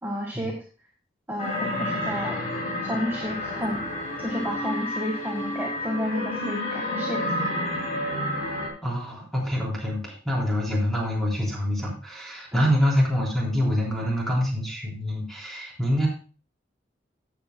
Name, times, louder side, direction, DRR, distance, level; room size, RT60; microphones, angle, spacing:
voice 1, 0.0-0.6 1.3-3.9 4.2-7.4 12.5-12.7, equal, 15° right, -2 dB, 1.5 m, -31 dB
sound 1, 1.4-8.7, left 1 dB, 50° left, 3.1 m, -30 dB
voice 2, 8.8-16.1, equal, ahead, -4 dB, 3.8 m, -25 dB
14.5 x 8.0 x 2.3 m, 0.37 s
head